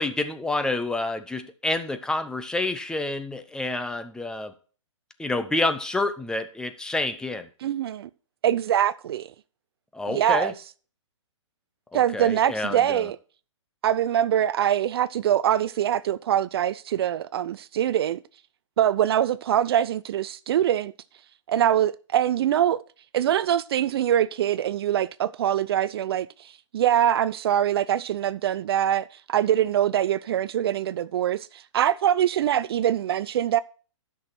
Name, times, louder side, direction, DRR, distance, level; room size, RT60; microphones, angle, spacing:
voice 1, 0.0-4.5 5.2-7.5 9.9-10.5 11.9-13.1, left 2 dB, 5° left, 0.6 m, -28 dB
voice 2, 7.6-8.1 8.4-9.3 10.1-10.5 11.9-13.2 13.8-18.2 18.8-20.9 21.5-22.8 23.1-33.6, right 10 dB, 50° right, 0.4 m, -23 dB
12.5 x 6.1 x 4.3 m
hypercardioid pair, 130°, 16 cm